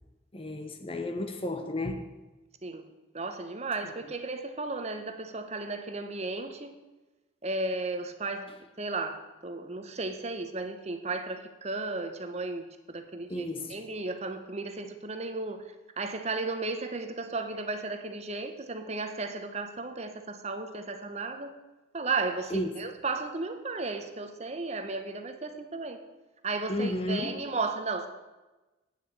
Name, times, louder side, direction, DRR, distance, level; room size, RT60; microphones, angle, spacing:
voice 1, 0.3-2.1 13.3-13.8 22.5-22.8 26.7-27.4, left 1 dB, 25° left, 0.8 m, -33 dB
voice 2, 2.6-6.7 7.4-21.6 21.9-26.0 26.4-28.1, right 3 dB, 30° right, 0.9 m, -34 dB
9.3 x 6.9 x 8.4 m
head